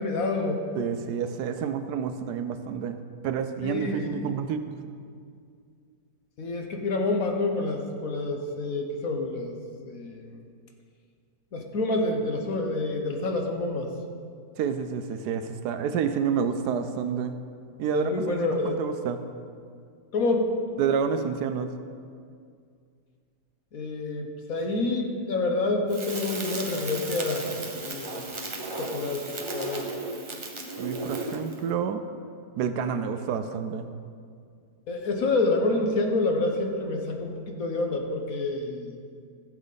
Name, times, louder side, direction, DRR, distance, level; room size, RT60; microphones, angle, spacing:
voice 1, 0.0-0.6 3.6-4.2 6.4-9.5 9.8-10.4 11.5-13.9 17.9-18.8 20.1-20.5 23.7-27.5 27.8-28.3 28.8-29.3 29.5-29.9 34.9-39.0, left 2 dB, 60° left, 2 dB, 1.3 m, -28 dB
voice 2, 0.8-3.0 3.2-4.8 14.6-17.4 17.8-18.4 18.6-19.2 20.8-21.7 30.8-32.0 32.6-33.9, right 7 dB, 75° right, 9 dB, 1.1 m, -29 dB
Crackle, 25.9-31.6, right 2 dB, 30° right, 0.6 m, -35 dB
15.0 x 7.5 x 4.0 m, 2.2 s
omnidirectional pair, 1.8 m